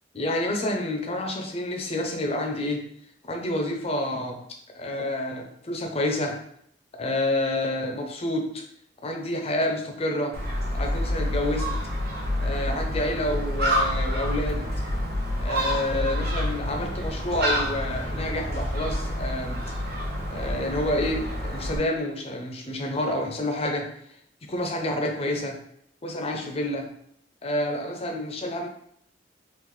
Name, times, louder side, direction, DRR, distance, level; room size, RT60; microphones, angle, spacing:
voice 1, 0.1-2.8 3.3-4.4 4.7-6.4 6.9-8.6 9.0-10.4 10.7-11.7 12.4-14.7 15.4-19.6 20.3-23.9 24.4-25.6 26.0-26.9 27.4-28.7, left 1 dB, 35° left, 3 dB, 0.5 m, -28 dB
Gull seagull, 10.3-21.8, equal, 55° right, 0.8 m, -28 dB
3.8 x 2.4 x 3.1 m, 0.69 s
head